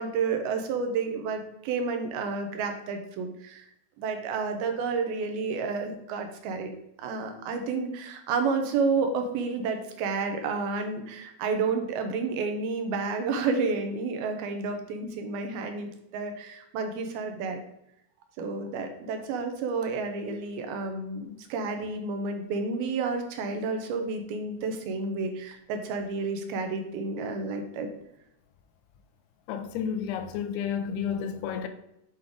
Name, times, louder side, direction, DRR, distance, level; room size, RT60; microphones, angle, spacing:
voice 1, 0.0-3.7 4.0-6.7 7.0-17.6 18.4-27.9, right 4 dB, 80° right, 2.6 m, -30 dB
voice 2, 29.5-31.7, left 7 dB, 85° left, 2.7 m, -31 dB
7.8 x 4.7 x 3.6 m
omnidirectional pair, 4.5 m